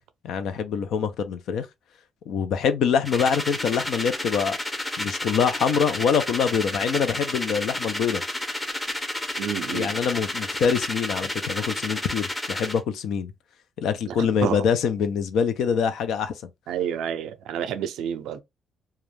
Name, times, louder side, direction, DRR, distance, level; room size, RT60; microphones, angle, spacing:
voice 1, 0.2-1.7 2.3-4.6 5.0-8.2 9.7-13.3 13.8-16.5, left 7 dB, 75° left, 0.5 m, -25 dB
sound 1, 3.0-12.8, left 1 dB, 15° left, 0.6 m, -31 dB
voice 2, 9.4-9.9 14.1-14.6 16.7-18.4, right 9 dB, 85° right, 0.4 m, -29 dB
2.3 x 2.1 x 3.1 m
cardioid pair, 90°, 0 cm